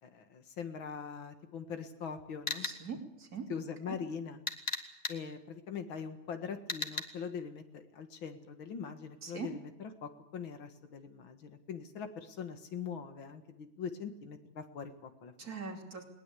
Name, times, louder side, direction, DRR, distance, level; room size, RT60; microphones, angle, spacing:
voice 1, 0.0-2.7 3.5-4.4 5.1-15.3, left 6 dB, 85° left, 7 dB, 2.5 m, -42 dB
sound 1, 2.5-2.8 4.5-5.2 6.7-7.0, left 4 dB, 35° left, 1.7 m, -35 dB
voice 2, 2.6-3.5 3.9-4.0 9.2-9.5 15.4-16.0, right 5 dB, 50° right, 4 dB, 3.3 m, -41 dB
20.5 x 19.5 x 8.5 m, 0.85 s
omnidirectional pair, 2.1 m